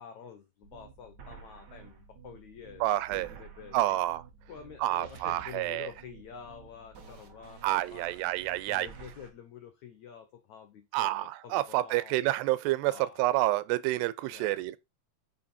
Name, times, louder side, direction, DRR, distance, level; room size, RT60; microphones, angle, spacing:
voice 1, 0.0-2.8 3.1-4.0 4.5-8.2 8.7-12.1 12.9-13.3 14.3-14.6, left 8 dB, 90° left, 1.6 m, -48 dB
sound 1, 0.6-9.3, right 5 dB, 65° right, 1.0 m, -51 dB
voice 2, 2.8-3.3 3.7-4.2 4.8-5.9 7.6-8.9 10.9-12.9 13.2-14.8, right 16 dB, 90° right, 2.8 m, -28 dB
8.7 x 6.3 x 4.3 m
omnidirectional pair, 4.7 m